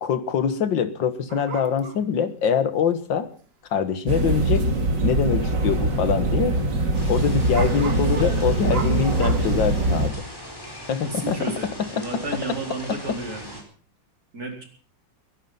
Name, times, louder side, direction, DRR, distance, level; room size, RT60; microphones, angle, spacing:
voice 1, 0.0-3.3 3.7-4.7 5.0-6.5 7.1-10.1 10.9-11.4, left 7 dB, 75° left, 11 dB, 2.2 m, -24 dB
sound 1, 1.3-2.1 4.1-4.2 4.5-4.6 5.2-5.5 5.7-5.8 7.5-9.4, right 5 dB, 35° right, 1.4 m, -35 dB
sound 2, 4.1-10.1, right 2 dB, 70° right, 3.2 m, -22 dB
sound 3, 6.9-13.6, equal, 10° left, 4.7 m, -39 dB
voice 2, 11.0-13.6 14.3-14.6, right 2 dB, 50° right, 2 dB, 4.7 m, -32 dB
22.0 x 11.0 x 5.6 m, 0.43 s
omnidirectional pair, 2.0 m